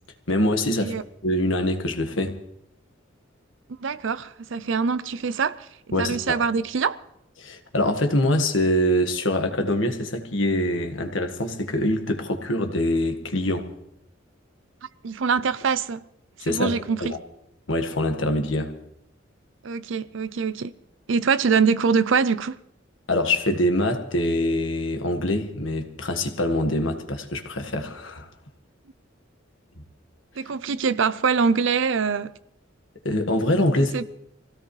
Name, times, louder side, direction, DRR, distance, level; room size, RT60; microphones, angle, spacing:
voice 1, 0.3-0.9 1.2-2.4 5.9-6.4 7.4-13.7 16.4-17.2 17.7-18.7 23.1-28.3 33.0-34.1, left 1 dB, 70° left, 1.7 m, -24 dB
voice 2, 3.8-5.7 6.0-7.0 15.0-16.0 16.4-17.1 19.6-20.7 21.1-22.6 30.4-32.3 33.8-34.0, right 5 dB, 70° right, 0.6 m, -24 dB
25.0 x 16.5 x 3.3 m
head